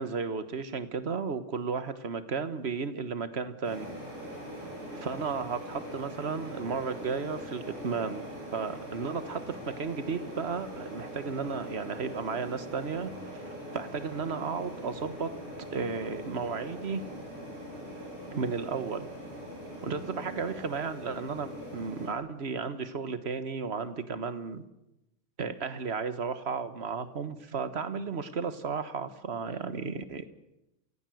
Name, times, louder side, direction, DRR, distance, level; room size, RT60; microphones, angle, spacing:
voice 1, 0.0-3.9 4.9-8.2 8.5-15.3 15.7-17.0 18.3-19.1 19.8-24.6 25.4-30.2, right 5 dB, 35° right, 11 dB, 1.3 m, -34 dB
sound 1, 3.6-22.1, equal, 85° right, 8.6 m, -42 dB
28.5 x 16.5 x 7.8 m, 0.90 s
omnidirectional pair, 2.3 m